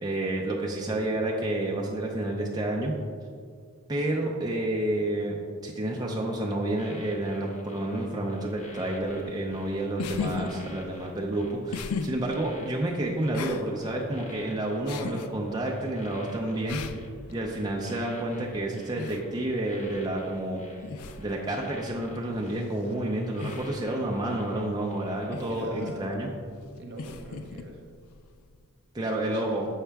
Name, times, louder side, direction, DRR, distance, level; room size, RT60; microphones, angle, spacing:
voice 1, 0.0-2.9 3.9-5.4 5.6-16.8 17.3-20.6 21.2-26.3 28.9-29.7, right 1 dB, 20° right, -2 dB, 0.5 m, -30 dB
sound 1, 6.2-25.4 25.7-26.0, left 1 dB, 35° left, 0.9 m, -51 dB
sound 2, 9.0-28.7, left 4 dB, 80° left, 0.4 m, -40 dB
voice 2, 25.5-26.1 26.8-27.8 29.0-29.6, right 1 dB, 55° right, 2 dB, 1.0 m, -43 dB
7.2 x 5.6 x 3.4 m, 2.1 s
head